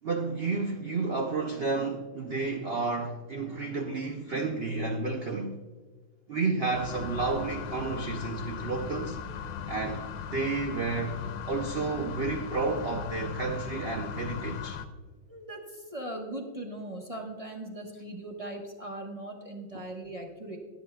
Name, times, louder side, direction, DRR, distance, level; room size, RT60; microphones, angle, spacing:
voice 1, 0.0-5.6 6.3-9.2 9.7-14.8, right 3 dB, 90° right, 0.5 m, -31 dB
sound 1, 6.7-14.9, left 7 dB, 85° left, 1.4 m, -38 dB
voice 2, 15.3-20.6, right 1 dB, 25° right, 1.0 m, -39 dB
21.5 x 7.2 x 2.3 m
omnidirectional pair, 2.0 m